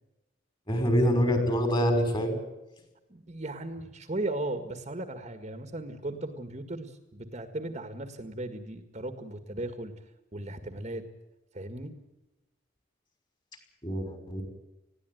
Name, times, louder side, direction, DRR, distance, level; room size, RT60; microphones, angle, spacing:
voice 1, 0.7-2.4 13.8-14.4, equal, 25° left, 6 dB, 5.3 m, -25 dB
voice 2, 3.1-9.9 10.3-11.0 11.5-11.9, right 2 dB, 35° right, 8 dB, 1.8 m, -36 dB
20.5 x 16.0 x 9.2 m, 1.0 s
head